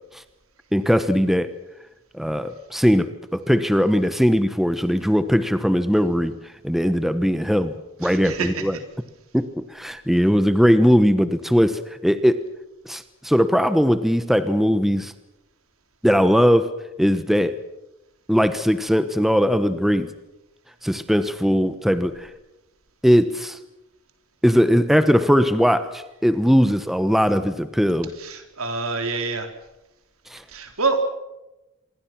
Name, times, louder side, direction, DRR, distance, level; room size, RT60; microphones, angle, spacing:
voice 1, 0.7-1.5 2.1-6.3 6.6-7.7 8.0-8.8 9.3-12.4 12.9-15.1 16.0-16.7 17.0-17.6 18.3-20.1 20.8-22.3 23.0-23.6 24.4-28.1 30.3-30.4, equal, ahead, 11 dB, 1.1 m, -19 dB
voice 2, 8.0-8.6 28.2-29.5 30.5-31.0, right 4 dB, 90° right, 6 dB, 3.9 m, -26 dB
26.5 x 23.5 x 6.1 m, 0.98 s
head